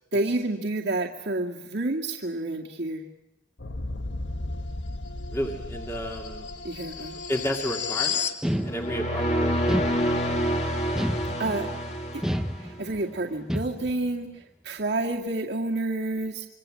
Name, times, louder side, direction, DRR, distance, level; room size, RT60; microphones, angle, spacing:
voice 1, 0.1-3.0 6.6-7.2 11.4-11.7 12.1-12.2 12.6-16.5, right 2 dB, 65° right, -2 dB, 2.2 m, -29 dB
sound 1, 3.6-8.4, left 5 dB, 80° left, 1.4 m, -33 dB
voice 2, 5.3-6.5 7.3-8.3 8.6-9.6, equal, 15° left, 1 dB, 2.4 m, -31 dB
sound 2, 8.4-9.2 9.7-10.4 11.0-11.7 12.2-13.0 13.5-14.1, equal, 5° right, 1.0 m, -30 dB
sound 3, 8.6-12.9, equal, 40° left, 3.3 m, -27 dB
26.0 x 24.5 x 7.7 m, 0.94 s
head